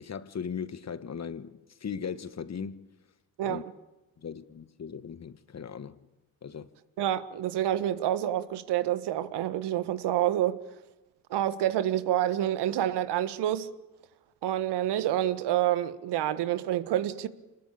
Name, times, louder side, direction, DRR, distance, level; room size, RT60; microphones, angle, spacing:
voice 1, 0.0-2.9 3.4-3.6 4.2-6.0 6.4-6.7, left 6 dB, 35° left, 1.5 m, -38 dB
voice 2, 7.0-10.6 11.3-13.7 14.4-17.3, right 12 dB, 65° right, 1.5 m, -28 dB
26.5 x 21.0 x 8.6 m
hypercardioid pair, 55°, 43 cm